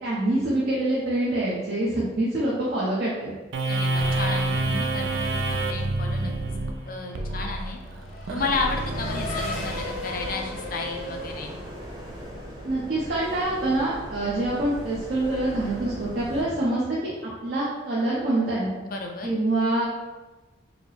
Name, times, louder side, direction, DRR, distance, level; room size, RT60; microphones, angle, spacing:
voice 1, 0.0-3.3 12.6-17.1 17.4-18.7 19.2-19.9, right 1 dB, 50° right, -8 dB, 0.8 m, -25 dB
sound 1, 3.5-10.3, right 2 dB, 70° right, 0.4 m, -28 dB
voice 2, 3.7-6.3 6.9-7.8 8.3-11.6 18.8-19.3, left 3 dB, 45° left, 2 dB, 0.5 m, -32 dB
Race car auto racing / Accelerating revving vroom, 6.3-12.4, left 2 dB, 80° left, 1.3 m, -37 dB
sound 2, 8.4-16.4, right 1 dB, 20° right, 0.6 m, -39 dB
5.0 x 2.0 x 3.2 m, 1.2 s
head